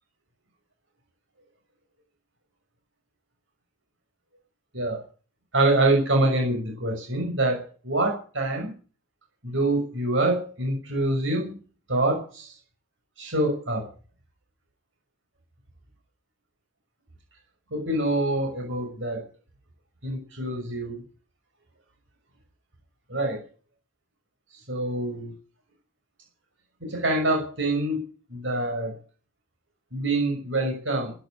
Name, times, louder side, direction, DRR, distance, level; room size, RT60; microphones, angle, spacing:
voice 1, 5.5-8.7 9.4-11.5 11.9-12.5 13.2-13.8 17.7-19.2 20.0-21.0 23.1-23.4 24.7-25.3 26.9-28.0 28.3-29.0 29.9-31.1, right 2 dB, 60° right, 1 dB, 6.4 m, -25 dB
15.5 x 11.0 x 8.4 m, 0.40 s
head